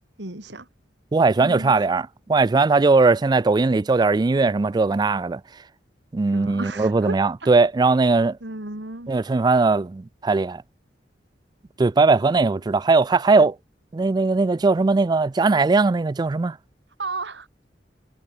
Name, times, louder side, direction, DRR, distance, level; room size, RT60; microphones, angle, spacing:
voice 1, 0.2-0.7 1.4-1.8 6.3-7.5 8.4-9.1 17.0-17.5, right 2 dB, 75° right, 3.4 m, -34 dB
voice 2, 1.1-5.4 6.1-8.4 9.1-10.6 11.8-13.6 13.9-16.6, right 3 dB, 25° right, 0.3 m, -19 dB
head